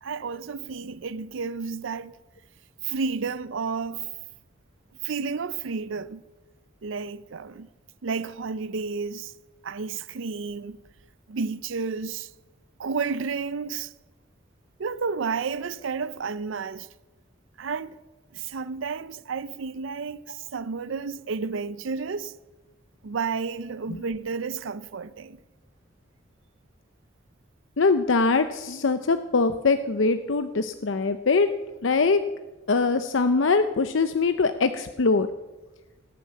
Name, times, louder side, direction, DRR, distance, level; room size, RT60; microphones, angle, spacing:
voice 1, 0.0-2.1 2.8-4.1 5.0-6.2 6.8-7.7 8.0-9.3 9.6-10.8 11.3-12.3 12.8-13.9 14.8-16.9 17.6-18.0 18.3-22.4 23.0-25.4, right 5 dB, 80° right, 0.5 m, -31 dB
voice 2, 27.8-31.5 31.8-32.2 32.7-35.3, left 4 dB, 80° left, 0.7 m, -22 dB
19.0 x 9.3 x 7.6 m
head